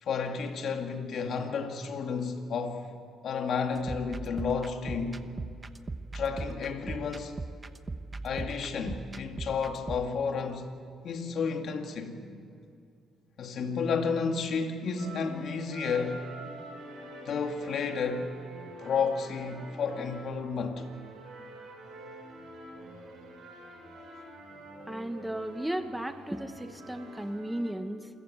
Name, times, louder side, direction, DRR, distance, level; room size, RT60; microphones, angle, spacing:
voice 1, 0.0-2.9 3.2-5.2 6.1-7.4 8.2-10.7 11.0-12.2 13.4-16.3 17.2-18.4 18.8-20.9, left 5 dB, 65° left, 2.4 m, -31 dB
sound 1, 3.8-10.1, right 3 dB, 25° right, 0.9 m, -39 dB
sound 2, 15.0-27.7, right 1 dB, 75° right, 7.0 m, -47 dB
voice 2, 24.8-28.1, right 1 dB, 5° right, 1.4 m, -35 dB
28.0 x 15.0 x 8.0 m
cardioid pair, 90°, 0 cm